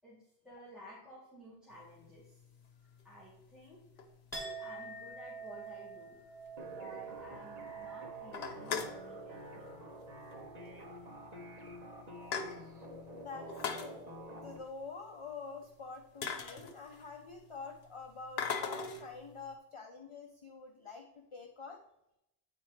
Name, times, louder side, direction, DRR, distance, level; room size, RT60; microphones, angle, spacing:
voice 1, 0.0-2.4 2.8-4.1 4.6-6.2 6.6-10.0, equal, ahead, -8 dB, 1.8 m, -54 dB
sound 1, 2.1-2.2 3.0-3.1 4.0-5.0 5.4-5.5 5.7-5.8 6.2-6.3 6.6-6.7 7.0-7.5 7.8-7.9 8.2-9.0 10.1-10.4 10.7-10.8 11.5-11.6 11.9-12.9 13.4-13.9 15.6-15.7 16.2-17.2 18.4-19.1, left 6 dB, 85° left, 1.0 m, -39 dB
Chink clink, 4.3-12.0 12.3-13.0, right 5 dB, 20° right, 1.6 m, -48 dB
sound 2, 6.6-14.6, equal, 40° right, 1.1 m, -49 dB
voice 2, 12.7-13.9 14.4-21.8, left 4 dB, 35° left, 3 dB, 0.6 m, -47 dB
9.3 x 4.4 x 3.2 m, 0.83 s
omnidirectional pair, 1.0 m